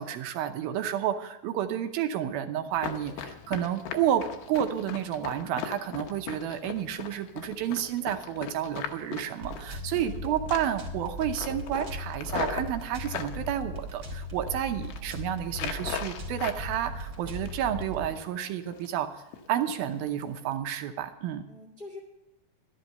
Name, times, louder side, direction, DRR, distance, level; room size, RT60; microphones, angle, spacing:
voice 1, 0.0-19.2 19.5-21.4, right 10 dB, 80° right, 7 dB, 2.6 m, -31 dB
Run, 2.7-10.2 10.5-10.9 11.2-13.3 13.9-14.5 14.8-15.0 15.5-16.6 17.0-17.8 18.1-18.3 18.7-19.0 19.3-19.5 19.9-20.1 20.5-20.6, left 8 dB, 80° left, 3.0 m, -38 dB
voice 2, 2.8-3.1 10.0-10.4 21.5-22.0, left 1 dB, 25° left, 0 dB, 1.3 m, -45 dB
sound 1, 9.4-18.1, left 1 dB, 40° right, 2.7 m, -38 dB
12.5 x 11.0 x 5.5 m, 0.95 s
omnidirectional pair, 4.4 m